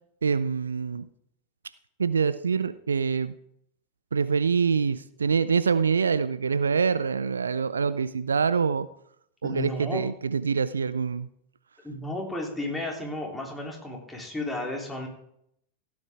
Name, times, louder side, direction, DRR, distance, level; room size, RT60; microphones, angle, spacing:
voice 1, 0.2-1.1 2.0-3.3 4.1-8.9 9.4-11.3, right 5 dB, 70° right, 16 dB, 0.4 m, -25 dB
voice 2, 9.4-10.0 11.8-15.1, left 1 dB, 5° left, -1 dB, 3.3 m, -33 dB
15.5 x 8.6 x 3.6 m, 0.73 s
figure-of-eight pair, 90°, 0 cm